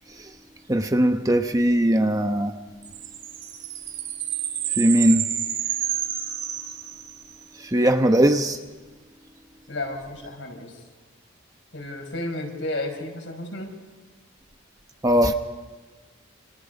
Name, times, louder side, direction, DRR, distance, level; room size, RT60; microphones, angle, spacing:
voice 1, 0.7-2.5 4.8-5.2 7.7-8.6 15.0-15.3, right 1 dB, 15° right, 6 dB, 1.0 m, -19 dB
sound 1, 2.8-7.4, right 10 dB, 60° right, 3.4 m, -30 dB
voice 2, 9.7-10.8 11.7-13.7, left 1 dB, 65° left, 2 dB, 6.0 m, -32 dB
29.0 x 29.0 x 5.4 m, 1.4 s
head